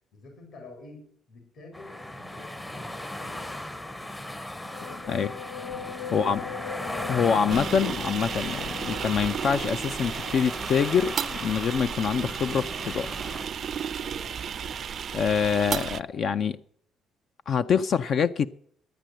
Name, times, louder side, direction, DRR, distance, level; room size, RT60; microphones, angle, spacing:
voice 1, 0.1-4.3 4.6-5.5 6.1-6.6 14.0-14.8, left 2 dB, 65° left, 2 dB, 4.2 m, -49 dB
sound 1, 1.7-13.5, left 1 dB, 10° left, 0.7 m, -37 dB
sound 2, 4.7-16.5, left 6 dB, 90° left, 1.6 m, -43 dB
voice 2, 6.1-6.4 7.1-13.1 15.1-16.6 17.5-18.5, left 7 dB, 50° left, 11 dB, 0.5 m, -25 dB
sound 3, 7.5-16.0, right 8 dB, 50° right, 0.5 m, -33 dB
12.0 x 9.1 x 7.6 m, 0.62 s
cardioid pair, 125°, 0 cm